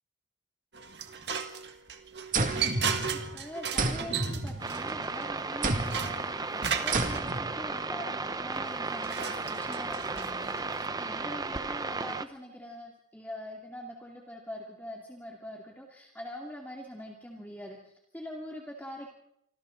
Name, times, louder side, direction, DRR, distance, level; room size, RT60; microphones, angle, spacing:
sound 1, 0.7-7.2 8.5-10.9, right 7 dB, 65° right, 1.9 m, -36 dB
sound 2, 2.3-3.4 3.8-5.1 5.6-6.2 6.9-7.6, right 2 dB, 45° right, 2.1 m, -31 dB
voice 1, 3.1-19.1, equal, 10° left, -1 dB, 2.3 m, -43 dB
sound 3, 4.6-12.3, right 3 dB, 20° right, 0.7 m, -35 dB
27.0 x 25.5 x 3.9 m, 0.74 s
head